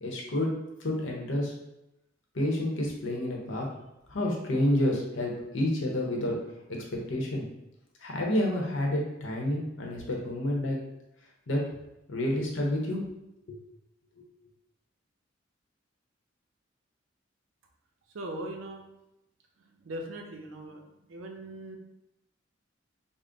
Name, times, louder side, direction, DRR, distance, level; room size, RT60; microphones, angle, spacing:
voice 1, 0.0-0.5 0.8-1.5 2.3-3.7 4.1-6.4 6.7-6.8 7.1-7.4 8.0-10.8 11.5-11.6 12.1-13.0 13.5-13.6, left 1 dB, 70° left, -1 dB, 0.8 m, -29 dB
voice 2, 18.1-18.8 19.6-21.8, right 1 dB, 85° right, 2 dB, 0.6 m, -40 dB
3.6 x 2.1 x 3.8 m, 0.89 s
head